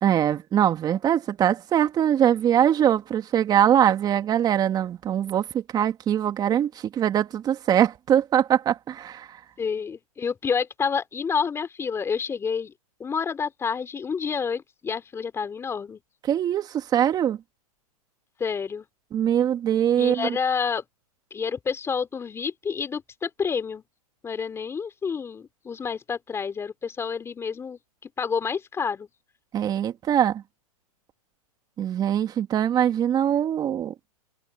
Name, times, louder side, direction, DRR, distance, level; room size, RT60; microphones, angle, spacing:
voice 1, 0.0-9.3 16.3-17.4 19.1-20.4 29.5-30.4 31.8-33.9, right 10 dB, 20° right, 2.2 m, -22 dB
voice 2, 9.6-12.7 13.0-16.0 18.4-18.9 20.0-20.9 21.3-23.8 24.2-29.1, left 6 dB, 15° left, 3.8 m, -29 dB
hypercardioid pair, 135°, 19 cm